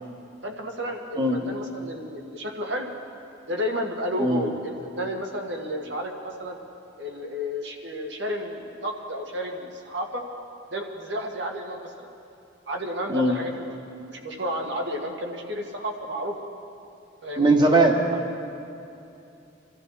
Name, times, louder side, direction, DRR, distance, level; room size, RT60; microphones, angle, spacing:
voice 1, 0.4-2.9 3.5-6.6 7.0-10.2 10.7-12.1 12.7-16.4 17.2-17.6, equal, 65° right, 1 dB, 1.8 m, -32 dB
voice 2, 17.4-18.0, right 2 dB, 25° right, 1 dB, 1.5 m, -19 dB
25.0 x 14.0 x 4.2 m, 2.7 s
head